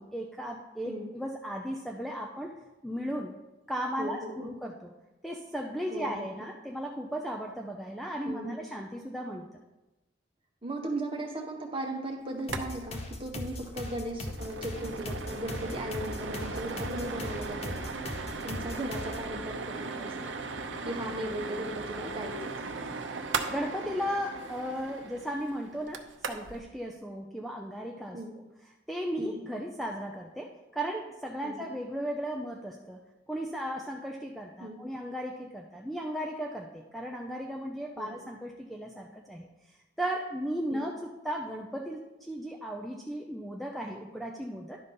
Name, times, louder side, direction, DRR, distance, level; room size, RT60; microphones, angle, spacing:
voice 1, 0.0-3.3 3.7-4.9 5.2-9.5 23.5-28.2 28.9-33.0 33.3-39.5 40.0-44.8, equal, ahead, 0 dB, 0.5 m, -36 dB
voice 2, 4.0-4.5 5.9-6.2 8.2-8.6 10.6-17.8 18.4-20.3 20.8-22.5 28.1-28.3 29.2-29.4 31.4-31.7 34.6-34.8 38.0-38.1 40.7-40.8, right 1 dB, 30° right, 1 dB, 1.3 m, -37 dB
sound 1, 12.4-12.7 12.9-13.0 13.4-13.5 13.9-26.6, right 4 dB, 85° right, 0.7 m, -38 dB
sound 2, 12.5-19.3, left 1 dB, 35° left, 0.8 m, -40 dB
11.0 x 4.0 x 5.3 m, 1.0 s
head